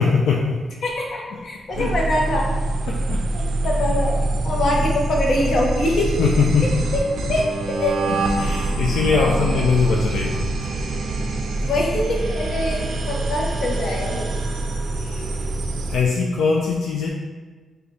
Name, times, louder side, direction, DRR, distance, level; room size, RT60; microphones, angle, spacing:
voice 1, 0.0-0.6 1.8-2.0 2.9-3.5 3.9-4.0 4.6-4.8 6.2-6.9 8.1-10.6 14.9-15.5 15.9-17.1, left 5 dB, 85° left, -2 dB, 0.3 m, -22 dB
voice 2, 0.8-2.6 2.9-3.0 3.3-6.2 6.9-7.0 7.3-8.0 9.1-9.6 11.6-14.3, left 1 dB, 65° left, -1 dB, 0.7 m, -24 dB
sound 1, 1.7-16.1, right 2 dB, 70° right, 0.4 m, -25 dB
4.9 x 2.2 x 3.0 m, 1.4 s
cardioid pair, 95°, 0 cm